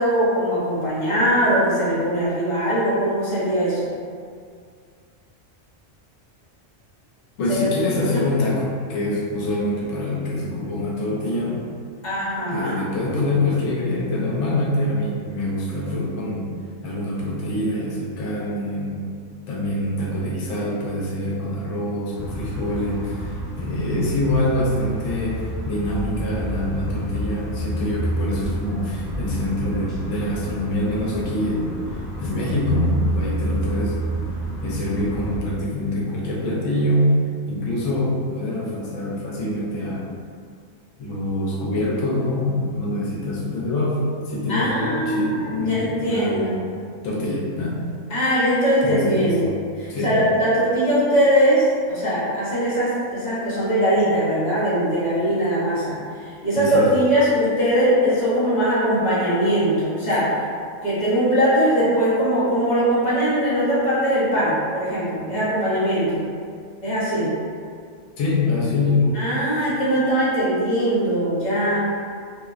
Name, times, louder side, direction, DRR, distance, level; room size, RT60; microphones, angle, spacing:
voice 1, 0.0-3.9 7.5-7.7 8.1-8.2 12.0-12.8 44.5-46.6 48.1-56.0 56.2-60.4 60.8-66.2 66.8-67.4 69.1-71.8, equal, 45° left, -10 dB, 0.7 m, -21 dB
voice 2, 7.4-11.7 12.5-16.5 16.8-19.0 19.5-33.9 34.6-37.1 37.5-40.1 41.0-44.0 44.2-46.6 47.0-47.8 48.8-49.4 49.9-50.2 56.6-56.9 68.2-69.2, left 1 dB, 80° left, -5 dB, 1.0 m, -25 dB
sound 1, 22.1-35.4, right 1 dB, ahead, 0.4 m, -29 dB
2.6 x 2.0 x 2.3 m, 2.2 s
omnidirectional pair, 1.3 m